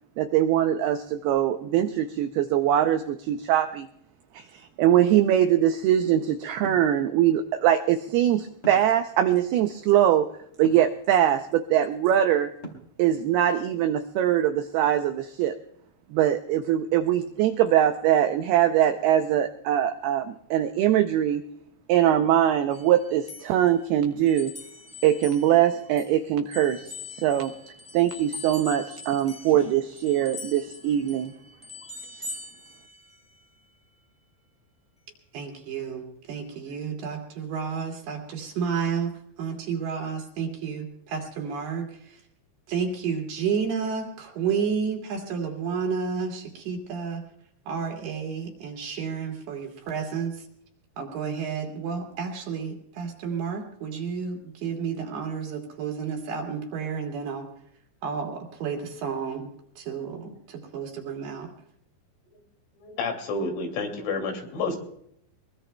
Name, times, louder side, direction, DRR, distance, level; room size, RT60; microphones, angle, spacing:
voice 1, 0.2-3.9 4.3-4.5 4.8-10.3 10.6-12.5 13.0-15.6 16.1-21.4 21.9-24.5 25.0-27.5 27.9-31.3, right 11 dB, 90° right, 7 dB, 2.2 m, -22 dB
sound 1, 6.6-6.9 8.6-9.0 10.6-10.9 12.6-13.0, right 1 dB, 25° left, 2.0 m, -39 dB
sound 2, 22.7-26.2 26.5-33.4, left 3 dB, 5° left, 0.5 m, -43 dB
voice 2, 35.3-42.2 42.7-47.3 47.7-50.4 51.0-57.5 58.0-61.5, right 6 dB, 65° right, 2 dB, 4.1 m, -31 dB
voice 3, 62.8-64.8, left 3 dB, 85° left, 3 dB, 5.0 m, -29 dB
22.5 x 22.5 x 2.2 m, 0.71 s
omnidirectional pair, 5.3 m